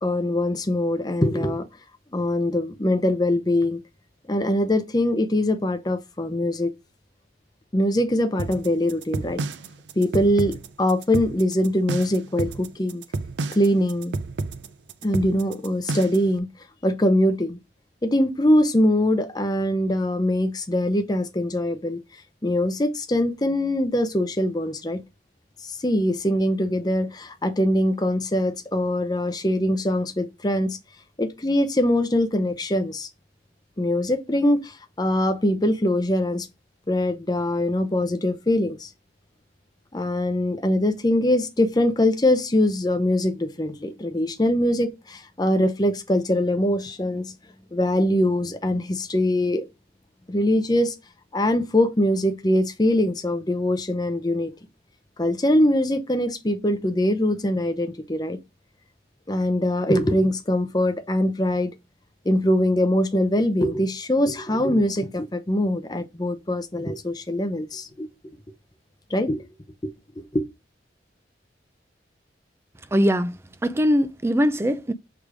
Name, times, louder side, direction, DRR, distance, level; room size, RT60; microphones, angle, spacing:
voice 1, 0.0-1.6 2.1-3.8 4.3-6.7 7.7-9.4 10.0-13.0 13.5-14.1 15.0-16.5 16.8-17.6 18.0-22.0 22.4-25.0 25.6-30.8 31.2-33.1 33.8-36.5 36.9-38.9 39.9-47.3 47.7-49.6 50.3-50.9 51.3-54.5 55.2-58.4 59.3-61.7 62.2-68.1 69.1-69.5 70.2-70.4, left 1 dB, 20° left, 0.7 m, -22 dB
sound 1, 8.4-16.3, right 3 dB, 85° right, 0.5 m, -30 dB
voice 2, 72.9-74.9, equal, 15° right, 0.4 m, -22 dB
6.3 x 3.5 x 4.9 m
head